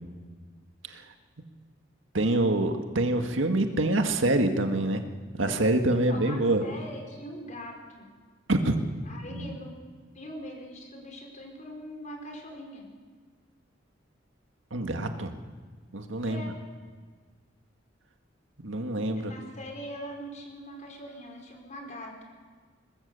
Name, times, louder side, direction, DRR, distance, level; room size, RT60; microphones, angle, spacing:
voice 1, 2.1-5.0 5.4-6.6 8.5-8.8 9.3-9.6 14.7-15.3 15.9-16.4 18.6-19.3, right 1 dB, 85° right, 5 dB, 1.9 m, -26 dB
voice 2, 5.9-8.1 9.1-9.8 10.1-12.9 16.2-16.6 19.2-22.2, equal, 40° left, 2 dB, 4.9 m, -42 dB
23.0 x 20.0 x 7.0 m, 1.5 s
head